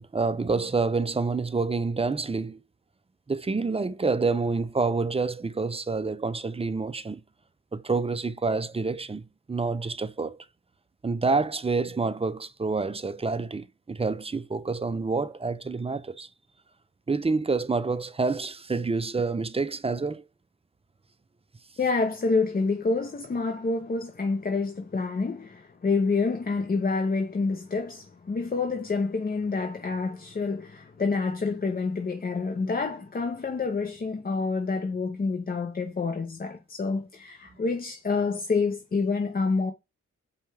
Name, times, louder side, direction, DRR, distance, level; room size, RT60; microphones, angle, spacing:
voice 1, 0.0-2.6 3.3-7.2 7.7-10.4 11.0-16.3 17.1-20.2, right 4 dB, 20° right, 0.5 m, -28 dB
voice 2, 21.8-39.7, left 4 dB, 30° left, 0.6 m, -28 dB
5.1 x 2.3 x 3.3 m
cardioid pair, 55°, 30 cm